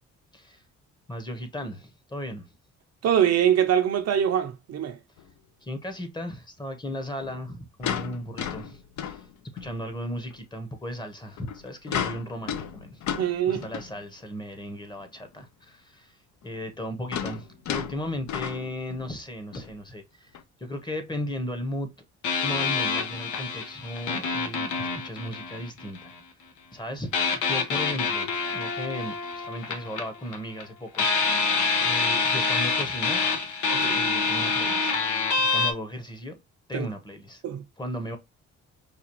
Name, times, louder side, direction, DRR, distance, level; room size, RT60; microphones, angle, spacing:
voice 1, 1.1-2.5 5.6-9.2 9.5-13.0 13.5-16.2 16.4-20.3 20.6-21.9 22.4-26.1 26.7-31.5 31.8-33.2 33.9-34.9 35.4-36.3 36.7-37.4 37.8-38.2, left 1 dB, 15° left, 0.8 m, -36 dB
voice 2, 3.0-5.0 13.2-13.6 33.7-34.0 36.7-36.9 37.4-37.6, right 9 dB, 55° right, 0.6 m, -23 dB
sound 1, 5.2-5.3 7.2-9.8 10.3-10.4 11.3-14.1 14.7-14.8 15.0-15.1 16.4-19.2 19.5-19.7 20.3-20.4, left 9 dB, 70° left, 0.6 m, -34 dB
sound 2, 22.2-26.1 27.1-30.6 30.9-35.7, left 4 dB, 90° left, 0.9 m, -26 dB
4.9 x 2.3 x 2.9 m
cardioid pair, 90°, 30 cm